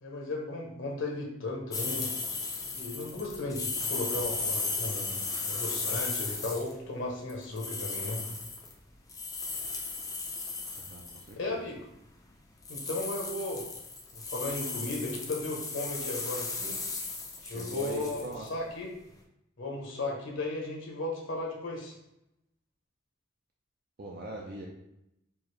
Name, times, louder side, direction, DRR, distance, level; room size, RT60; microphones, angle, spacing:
voice 1, 0.0-2.1 2.7-8.2 11.4-11.8 12.7-13.6 14.1-16.8 17.5-18.2 18.5-18.9 19.6-21.9, left 2 dB, 65° left, -1 dB, 0.9 m, -35 dB
sound 1, 1.7-6.7 7.3-11.3 12.6-18.5, left 3 dB, 15° left, 0.4 m, -35 dB
voice 2, 10.8-11.7 17.4-18.5 24.0-24.7, right 2 dB, 45° right, -2 dB, 0.4 m, -41 dB
4.5 x 2.5 x 3.1 m, 0.85 s
head